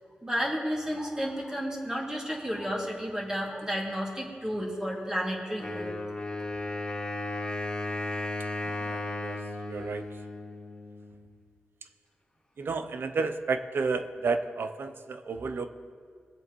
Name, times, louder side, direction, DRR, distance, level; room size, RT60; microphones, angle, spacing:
voice 1, 0.2-6.0, equal, 15° right, -2 dB, 2.4 m, -32 dB
Wind instrument woodwind instrument, 5.6-11.2, left 2 dB, 25° left, 2.3 m, -35 dB
voice 2, 8.6-10.2 12.6-15.7, right 4 dB, 65° right, 9 dB, 0.7 m, -32 dB
22.5 x 7.7 x 3.1 m, 2.1 s
cardioid pair, 65°, 4 cm